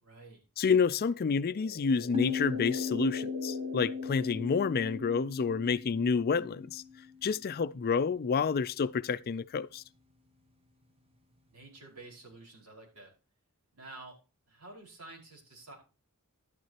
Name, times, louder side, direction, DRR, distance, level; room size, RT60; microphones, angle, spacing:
voice 1, 0.0-0.4 11.5-13.1 13.7-14.1 14.5-15.8, right 2 dB, 80° right, 5.0 m, -50 dB
voice 2, 0.6-6.8 7.2-9.8, left 5 dB, 45° left, 0.4 m, -29 dB
sound 1, 1.1-5.3, equal, 65° right, 4.0 m, -44 dB
sound 2, 2.1-7.5, left 6 dB, 25° right, 1.0 m, -37 dB
12.0 x 9.4 x 2.9 m
head